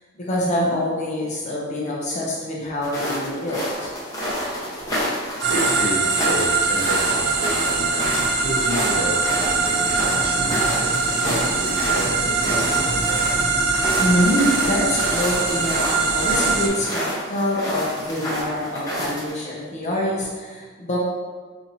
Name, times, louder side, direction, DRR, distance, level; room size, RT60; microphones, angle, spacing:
voice 1, 0.2-3.9 13.5-21.0, left 1 dB, 35° left, -4 dB, 0.5 m, -25 dB
sound 1, 2.8-19.3, equal, 20° left, 0.9 m, -29 dB
sound 2, 5.4-16.7, right 4 dB, 55° right, 0.5 m, -22 dB
voice 2, 5.5-13.3, equal, 80° right, -3 dB, 0.9 m, -31 dB
2.8 x 2.5 x 4.1 m, 1.5 s
head